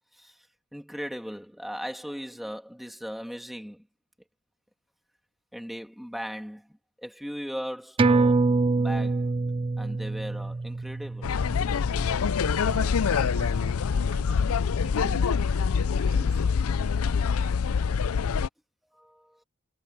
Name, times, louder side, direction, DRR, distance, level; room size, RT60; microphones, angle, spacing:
voice 1, 0.7-3.8 5.5-6.7 7.0-9.3 9.8-11.4 18.9-19.4, equal, ahead, 2.3 m, -38 dB
sound 1, 8.0-12.9 13.3-13.4, right 3 dB, 25° right, 0.3 m, -26 dB
sound 2, 11.2-18.5, left 6 dB, 80° left, 0.5 m, -25 dB
voice 2, 12.6-16.4, right 2 dB, 80° right, 2.2 m, -46 dB
head